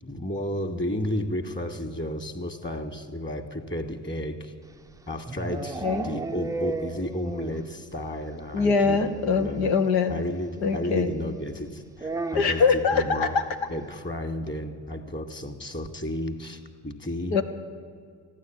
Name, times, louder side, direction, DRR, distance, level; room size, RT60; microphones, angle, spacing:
voice 1, 0.0-4.5 5.1-9.8 10.1-13.4 13.7-17.4, left 1 dB, 25° left, 6 dB, 1.9 m, -32 dB
sound 1, 4.7-7.8 8.0-8.1 8.4-8.5 8.8-8.9 10.2-10.3 12.0-12.8, right 3 dB, 10° right, 0.4 m, -33 dB
voice 2, 8.5-10.1 10.6-11.1 12.3-13.4 17.3-17.4, left 5 dB, 85° left, 6 dB, 1.0 m, -23 dB
14.5 x 9.8 x 8.8 m, 2.2 s
hypercardioid pair, 50°, 45 cm